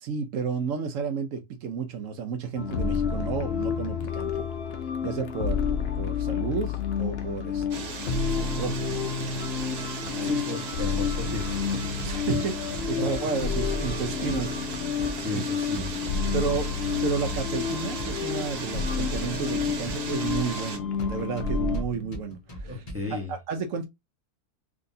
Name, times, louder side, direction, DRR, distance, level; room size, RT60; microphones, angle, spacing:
voice 1, 0.0-4.4 5.0-8.1 8.4-9.4 10.0-10.4 12.0-14.6 15.0-15.4 16.3-16.7 17.0-22.8 23.1-23.9, right 5 dB, 65° right, 0.9 m, -32 dB
sound 1, 2.6-21.8, left 6 dB, 70° left, 0.6 m, -30 dB
sound 2, 7.7-20.8, right 5 dB, 80° right, 1.4 m, -37 dB
voice 2, 10.2-11.9 13.0-13.3 15.2-15.9 22.6-23.3, left 3 dB, 10° right, 0.8 m, -34 dB
sound 3, 11.2-23.2, equal, 30° left, 1.0 m, -41 dB
3.6 x 2.8 x 2.6 m
omnidirectional pair, 1.6 m